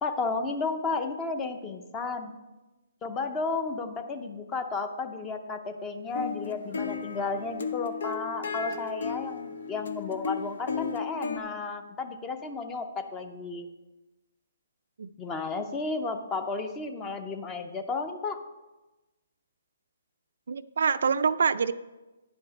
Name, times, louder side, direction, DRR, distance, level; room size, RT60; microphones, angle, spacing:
voice 1, 0.0-2.3 3.0-13.7 15.2-18.4, left 4 dB, 15° left, 8 dB, 0.6 m, -33 dB
sound 1, 6.1-11.4, left 5 dB, 70° left, 0.7 m, -34 dB
voice 2, 20.5-21.7, right 5 dB, 70° right, 13 dB, 0.3 m, -25 dB
9.7 x 5.2 x 5.2 m, 1.1 s
hypercardioid pair, 155°, 0 cm